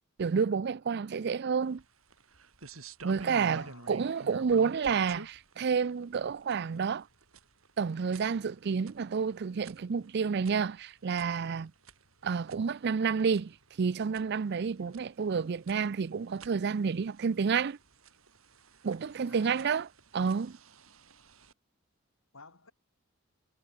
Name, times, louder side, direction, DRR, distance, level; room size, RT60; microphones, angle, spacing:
voice 1, 0.2-1.8 3.0-7.1 7.8-11.7 12.2-17.8 18.8-19.9 20.1-20.6, right 6 dB, 50° right, 0.4 m, -30 dB
sound 1, 1.6-21.5, right 3 dB, 85° right, 3.5 m, -52 dB
voice 2, 3.2-4.0 19.3-19.8 22.3-22.7, left 3 dB, 80° left, 6.7 m, -53 dB
head